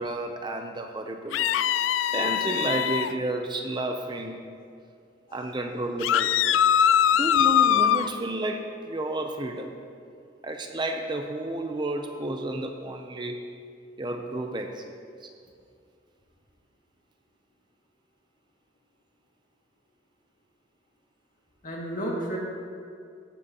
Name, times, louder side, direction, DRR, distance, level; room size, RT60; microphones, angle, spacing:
voice 1, 0.0-1.5 2.1-4.4 5.3-6.3 7.1-9.7 10.4-13.4 14.0-14.9 15.2-15.3, right 2 dB, 25° right, 4 dB, 0.6 m, -31 dB
sound 1, 1.3-3.1 6.0-8.1, left 10 dB, 75° left, 0.3 m, -22 dB
voice 2, 21.6-22.4, right 1 dB, 45° left, -3 dB, 2.1 m, -33 dB
16.5 x 10.0 x 2.9 m, 2.3 s
head